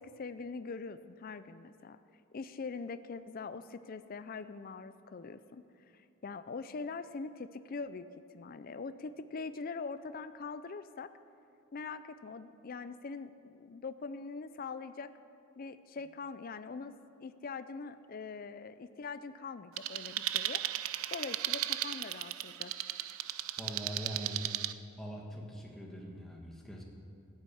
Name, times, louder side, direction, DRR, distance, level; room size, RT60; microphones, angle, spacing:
voice 1, 0.0-2.0 2.3-8.1 8.3-11.1 11.7-15.1 15.6-20.6 21.1-22.7, left 4 dB, 40° left, 12 dB, 0.4 m, -43 dB
sound 1, 19.8-24.7, right 13 dB, 70° right, 0.4 m, -36 dB
voice 2, 23.6-24.5 25.0-26.8, equal, ahead, -2 dB, 1.5 m, -42 dB
13.5 x 8.6 x 8.5 m, 2.7 s
head